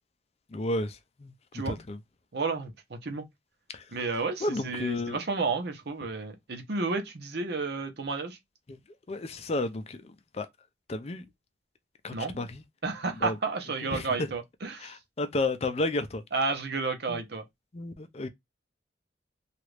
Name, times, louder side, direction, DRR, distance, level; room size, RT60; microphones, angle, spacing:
voice 1, 0.5-1.3 1.7-2.0 3.7-3.9 4.4-5.2 8.7-8.8 9.1-10.5 10.9-11.3 12.0-12.6 13.2-13.4 13.8-14.3 14.8-16.2 17.1-17.2 17.7-18.3, left 2 dB, 35° left, 0.5 m, -32 dB
voice 2, 2.3-3.2 3.9-8.4 12.1-12.5 12.8-14.9 16.3-17.4, right 4 dB, 60° right, 0.8 m, -32 dB
2.9 x 2.4 x 3.2 m
head